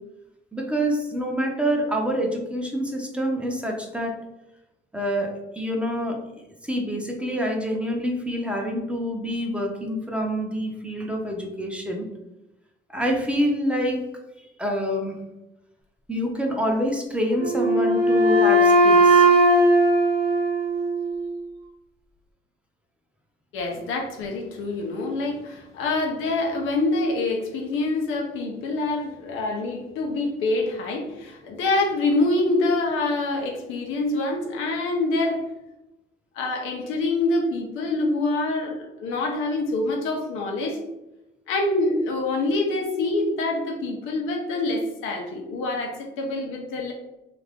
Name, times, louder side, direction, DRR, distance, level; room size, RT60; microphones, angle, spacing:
voice 1, 0.5-4.2 4.9-6.3 6.6-12.0 12.9-14.2 14.6-15.2 16.1-19.3, equal, 5° right, 0 dB, 0.6 m, -26 dB
Wind instrument woodwind instrument, 17.4-21.3, right 1 dB, 55° right, 0.8 m, -18 dB
voice 2, 23.5-35.4 36.3-40.8 41.5-46.9, left 2 dB, 90° left, 2 dB, 0.7 m, -26 dB
2.8 x 2.5 x 3.4 m, 0.96 s
cardioid pair, 90°, 20 cm